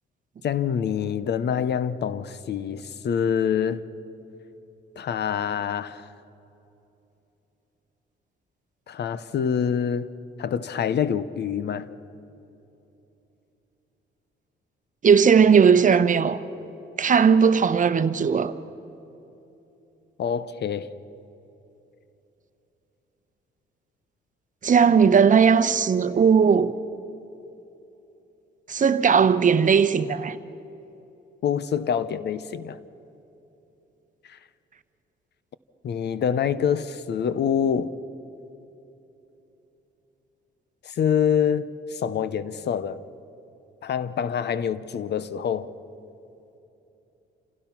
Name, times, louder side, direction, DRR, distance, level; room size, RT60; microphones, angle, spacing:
voice 1, 0.4-3.8 5.0-6.1 8.9-10.1 10.4-11.9 20.2-20.9 31.4-32.8 34.3-34.4 35.8-38.0 40.8-43.0 43.8-45.7, left 8 dB, 60° left, 0.9 m, -26 dB
voice 2, 15.0-16.4 17.0-18.5 24.6-26.7 28.7-30.4, right 6 dB, 40° right, 0.9 m, -18 dB
28.0 x 16.5 x 5.9 m
cardioid pair, 90°, 20 cm